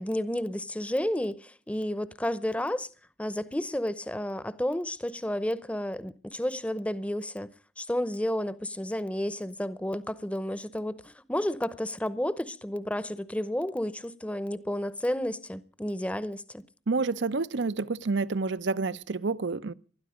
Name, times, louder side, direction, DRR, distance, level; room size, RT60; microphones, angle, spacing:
voice 1, 0.0-2.9 3.2-7.5 7.8-16.6, left 1 dB, 5° left, 0.7 m, -31 dB
voice 2, 16.9-19.7, right 3 dB, 75° right, 0.7 m, -29 dB
19.5 x 13.0 x 5.0 m
head